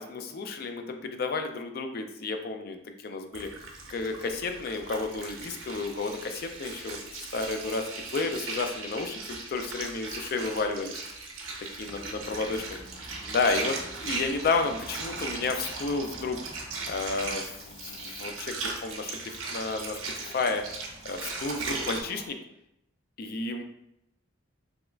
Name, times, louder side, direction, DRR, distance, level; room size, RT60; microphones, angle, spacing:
voice 1, 0.0-3.5 3.9-11.0 11.8-12.8 13.3-16.4 16.9-20.6 21.0-22.4 23.2-23.6, left 4 dB, 50° left, 6 dB, 0.3 m, -32 dB
Water, 3.3-22.0, right 3 dB, 80° right, 0.6 m, -38 dB
sound 1, 11.8-17.3, equal, 85° left, 0.9 m, -49 dB
sound 2, 11.8-22.3, right 2 dB, 25° right, 0.4 m, -50 dB
3.4 x 3.0 x 2.3 m, 0.82 s
head